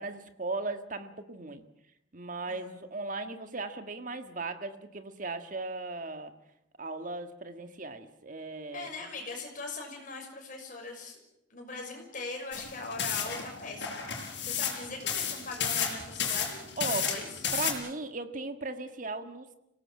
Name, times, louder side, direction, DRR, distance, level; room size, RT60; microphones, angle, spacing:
voice 1, 0.0-1.7 2.1-6.3 6.8-8.9 16.8-17.1 17.5-19.5, right 3 dB, 45° right, 8 dB, 1.8 m, -37 dB
voice 2, 2.5-2.8 8.7-11.2 11.5-17.4, left 3 dB, 45° left, 2 dB, 6.2 m, -41 dB
sound 1, 12.5-17.7, left 7 dB, 65° left, 5.8 m, -32 dB
26.5 x 18.0 x 7.7 m, 0.82 s
head